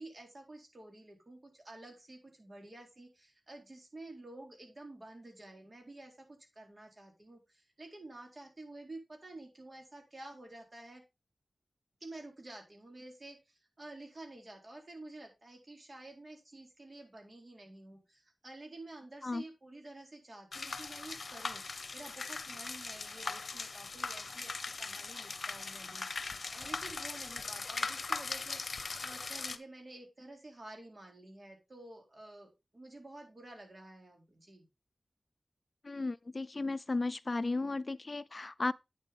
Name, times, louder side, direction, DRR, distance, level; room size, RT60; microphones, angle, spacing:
voice 1, 0.0-11.0 12.0-21.6 21.9-28.6 29.0-34.7, right 2 dB, 50° right, 3.9 m, -50 dB
sound 1, 20.5-29.6, left 4 dB, 70° left, 0.7 m, -40 dB
voice 2, 35.8-38.7, left 3 dB, 50° left, 0.4 m, -35 dB
8.9 x 7.4 x 3.8 m
cardioid pair, 45°, 0 cm